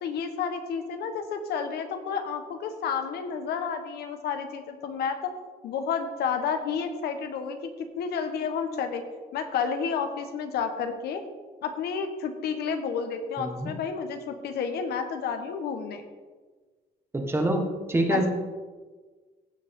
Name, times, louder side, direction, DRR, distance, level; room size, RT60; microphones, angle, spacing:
voice 1, 0.0-5.3 5.6-7.7 8.0-9.0 9.3-11.2 11.6-16.0 18.1-18.3, left 6 dB, 85° left, 7 dB, 1.2 m, -30 dB
voice 2, 13.4-13.7 17.1-18.3, right 1 dB, 15° right, 3 dB, 1.5 m, -26 dB
16.0 x 6.6 x 3.6 m, 1.4 s
cardioid pair, 125°, 16 cm